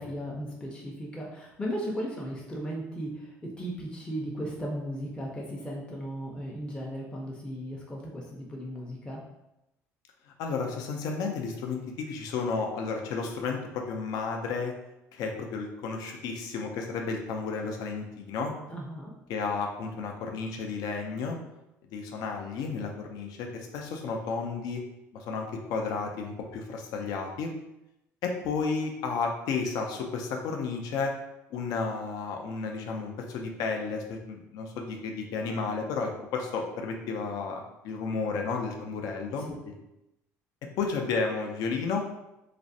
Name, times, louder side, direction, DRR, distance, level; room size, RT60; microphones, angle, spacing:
voice 1, 0.0-9.2 18.7-19.2 39.5-39.6, equal, 15° left, -3 dB, 0.5 m, -36 dB
voice 2, 10.4-14.7 15.1-18.5 19.3-21.4 21.9-24.8 25.1-27.5 28.2-31.1 31.5-39.5 40.8-42.1, left 4 dB, 70° left, 2 dB, 0.4 m, -32 dB
2.4 x 2.0 x 2.6 m, 0.90 s
supercardioid pair, 95°, 7 cm